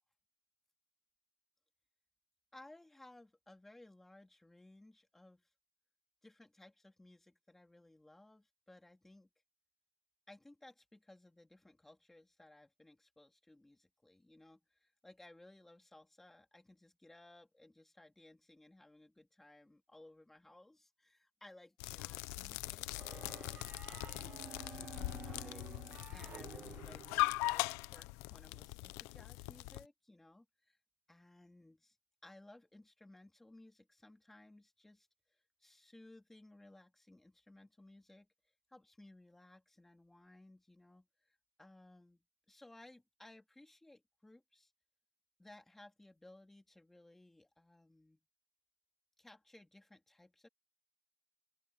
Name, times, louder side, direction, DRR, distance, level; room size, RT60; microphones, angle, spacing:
voice 1, 2.5-5.5 6.2-9.3 10.3-30.8 31.1-32.0 32.2-38.3 38.7-44.7 45.4-48.2 49.2-50.5, left 1 dB, 5° left, 3.0 m, -60 dB
sound 1, 21.8-29.8, left 22 dB, 35° left, 0.9 m, -40 dB
sound 2, 23.0-27.7, right 8 dB, 15° right, 0.6 m, -52 dB
open air
supercardioid pair, 155°, 8 cm